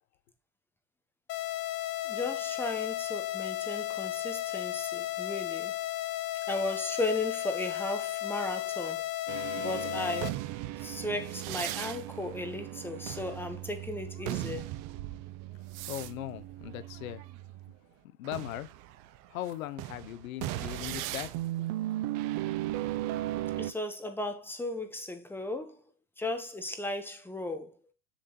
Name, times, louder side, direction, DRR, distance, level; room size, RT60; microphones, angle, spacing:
sound 1, 1.3-10.3, left 15 dB, 30° left, 0.5 m, -34 dB
voice 1, 2.0-5.7 6.5-9.0 9.6-10.4 10.8-14.6 23.6-25.8 26.2-27.7, left 2 dB, 5° left, 0.9 m, -35 dB
sound 2, 9.3-17.7 18.2-23.7, right 15 dB, 40° right, 0.6 m, -37 dB
voice 2, 15.9-17.2 18.2-18.7 19.3-21.3 21.6-21.7, left 13 dB, 85° left, 1.0 m, -38 dB
7.2 x 6.8 x 2.9 m
supercardioid pair, 140°, 41 cm